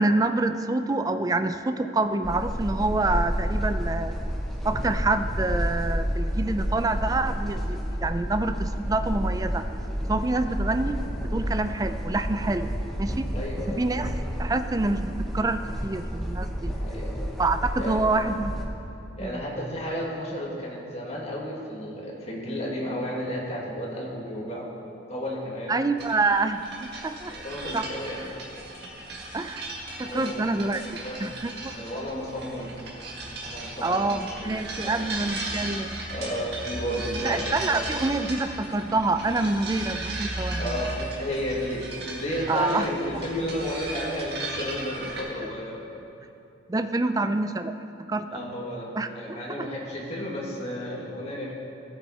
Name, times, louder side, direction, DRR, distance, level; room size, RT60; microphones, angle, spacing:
voice 1, 0.0-4.2 4.6-9.7 10.1-11.0 11.3-12.7 13.0-13.3 13.7-14.1 14.4-16.7 17.4-18.7 19.2-19.4 25.7-27.3 27.7-27.9 29.3-29.7 30.0-30.8 31.2-31.7 33.8-36.0 37.2-40.8 42.5-42.9 46.7-47.7 48.1-48.5 48.9-49.7, right 2 dB, 20° right, 9 dB, 0.3 m, -27 dB
sound 1, 2.2-18.7, equal, ahead, 0.9 m, -30 dB
voice 2, 13.3-13.8 16.7-17.3 17.8-18.1 19.2-24.7 25.1-25.7 27.3-28.3 30.0-30.5 31.0-31.2 31.7-32.7 33.4-34.1 34.5-35.0 36.1-37.8 40.6-45.8 48.3-48.9 49.1-51.5, equal, 35° left, -4 dB, 1.9 m, -32 dB
sound 2, 26.0-45.2, right 2 dB, 55° right, 1.8 m, -36 dB
16.0 x 7.3 x 4.2 m, 2.7 s
head